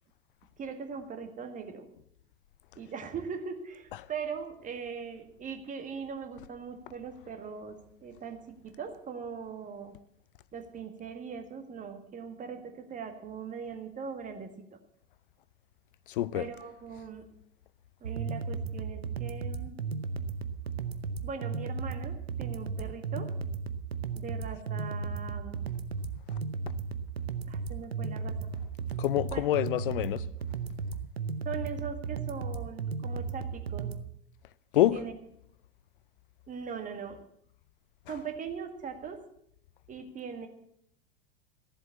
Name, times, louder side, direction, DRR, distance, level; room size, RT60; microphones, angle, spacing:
voice 1, 0.6-1.9 2.8-9.9 10.5-14.5 16.3-17.2 18.0-19.8 21.2-23.3 24.1-25.6 27.5-28.5 29.3-29.4 31.4-33.9 34.7-35.1 36.5-37.2 38.1-39.2 39.9-40.5, right 6 dB, 25° right, 1.9 m, -40 dB
voice 2, 16.1-16.5 29.0-30.2 34.7-35.0, left 14 dB, 60° left, 0.5 m, -26 dB
sound 1, 18.0-34.0, right 5 dB, 80° right, 0.8 m, -35 dB
14.0 x 7.7 x 8.2 m
figure-of-eight pair, 85°, 31 cm